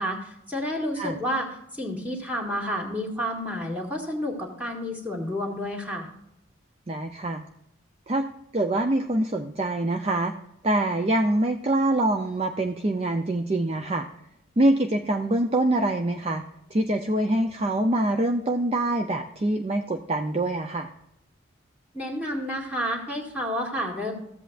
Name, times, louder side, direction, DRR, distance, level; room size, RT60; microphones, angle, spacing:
voice 1, 0.0-1.5 1.7-6.1 21.9-24.1, equal, 10° right, -1 dB, 2.0 m, -30 dB
voice 2, 6.9-7.4 8.1-8.3 8.5-10.3 10.6-14.1 14.6-16.4 16.7-20.9, right 1 dB, 30° right, 5 dB, 0.5 m, -24 dB
14.5 x 8.0 x 2.5 m, 0.81 s
head